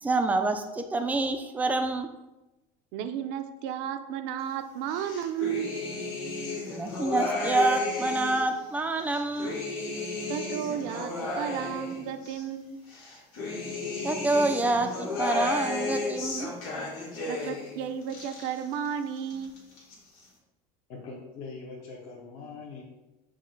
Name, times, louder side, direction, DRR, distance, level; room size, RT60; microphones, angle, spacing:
voice 1, 0.0-2.1 6.7-9.6 14.0-16.5, right 2 dB, 10° right, 6 dB, 0.3 m, -27 dB
voice 2, 2.9-5.7 10.3-12.8 17.3-19.5, right 8 dB, 65° right, 9 dB, 0.5 m, -33 dB
sound 1, 4.9-8.5 9.0-12.4 12.9-17.7 18.0-18.9 19.2-19.9, left 3 dB, 90° left, 1.3 m, -34 dB
voice 3, 20.9-22.8, left 4 dB, 55° left, -4 dB, 0.9 m, -42 dB
6.3 x 2.1 x 3.8 m, 1.0 s
cardioid pair, 140°, 18 cm